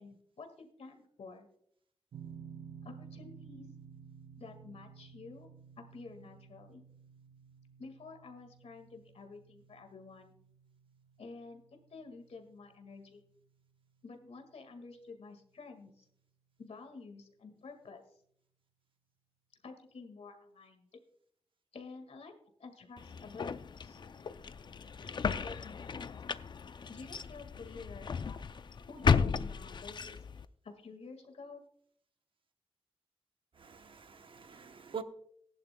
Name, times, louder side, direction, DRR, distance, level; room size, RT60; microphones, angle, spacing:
voice 1, 0.0-1.5 2.8-3.7 4.4-5.5 5.8-6.8 7.8-10.3 11.2-11.6 11.9-13.2 14.0-16.1 16.6-18.0 19.6-20.9 21.7-22.3 22.6-24.0 25.4-26.1 26.9-28.4 28.9-30.3 30.6-31.6, left 4 dB, 85° left, 1.8 m, -50 dB
sound 1, 2.1-15.0, right 7 dB, 90° right, 0.7 m, -54 dB
sound 2, 23.0-30.5, left 5 dB, 45° left, 0.4 m, -34 dB
voice 2, 33.6-35.0, right 6 dB, 55° right, 0.8 m, -45 dB
18.0 x 11.0 x 2.2 m
wide cardioid pair, 140°, 10 cm